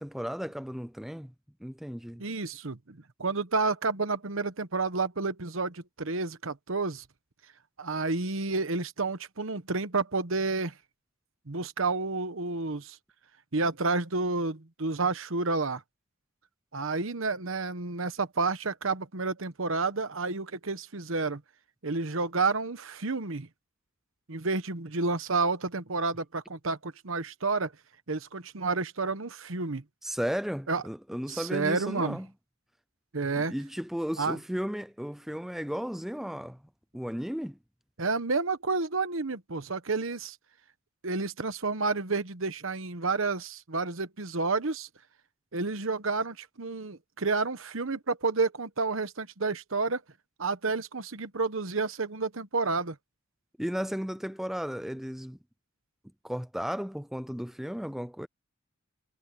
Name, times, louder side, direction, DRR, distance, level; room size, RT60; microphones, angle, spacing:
voice 1, 0.0-1.3 1.6-2.2 30.0-32.3 33.4-36.6 36.9-37.6 53.6-55.4 56.2-58.3, equal, ahead, 0.4 m, -34 dB
voice 2, 2.2-7.0 7.8-10.7 11.5-13.0 13.5-15.8 16.7-21.4 21.8-23.5 24.3-27.7 28.1-29.8 30.7-30.8 31.3-32.2 33.1-33.5 34.2-34.4 38.0-40.4 41.0-44.9 45.5-50.0 50.4-53.0, right 3 dB, 65° right, 1.1 m, -30 dB
head